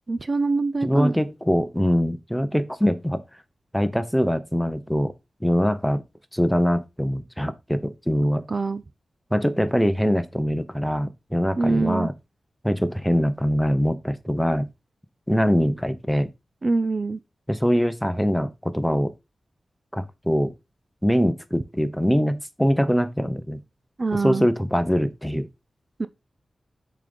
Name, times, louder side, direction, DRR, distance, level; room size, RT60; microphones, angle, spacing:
voice 1, 0.1-1.1 8.5-8.8 11.6-12.1 16.6-17.2 24.0-24.5 26.0-26.1, right 3 dB, 40° right, 0.6 m, -24 dB
voice 2, 0.8-3.2 3.7-5.1 5.4-6.0 6.3-8.5 9.3-12.1 12.6-14.7 15.3-16.3 17.5-19.1 19.9-20.5 21.0-23.6 24.1-25.5, equal, ahead, 1.0 m, -23 dB
6.6 x 5.5 x 5.2 m
wide cardioid pair, 90°, 0 cm